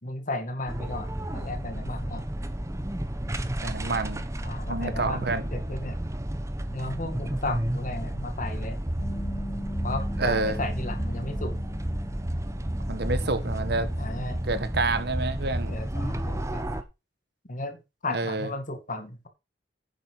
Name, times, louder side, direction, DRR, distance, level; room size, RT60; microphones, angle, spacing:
voice 1, 0.0-2.2 4.4-6.0 6.7-8.8 9.8-11.5 14.0-14.4 15.7-16.8 17.5-17.8 18.0-19.3, left 2 dB, 45° left, 2.1 m, -34 dB
sound 1, 0.7-16.8, right 1 dB, 15° right, 1.1 m, -31 dB
voice 2, 3.6-4.3 4.7-5.4 10.2-10.6 12.9-13.9 14.4-15.8 18.1-18.5, right 3 dB, 65° right, 1.4 m, -28 dB
Bass guitar, 9.0-15.3, equal, 25° left, 1.0 m, -42 dB
10.0 x 7.5 x 4.8 m
head